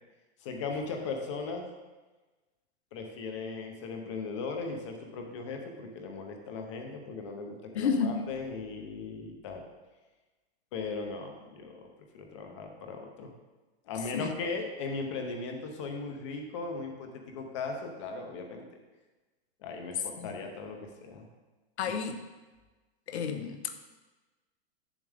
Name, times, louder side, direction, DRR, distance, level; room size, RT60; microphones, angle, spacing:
voice 1, 0.4-1.6 2.9-9.6 10.7-11.9 12.1-13.3 13.9-18.6 19.6-21.2, left 4 dB, 30° left, 3 dB, 0.7 m, -38 dB
voice 2, 7.7-8.2 14.1-14.3 20.2-20.3 21.8-22.2 23.1-23.9, left 6 dB, 80° left, 7 dB, 1.0 m, -31 dB
7.5 x 7.1 x 3.5 m, 1.2 s
supercardioid pair, 175°, 33 cm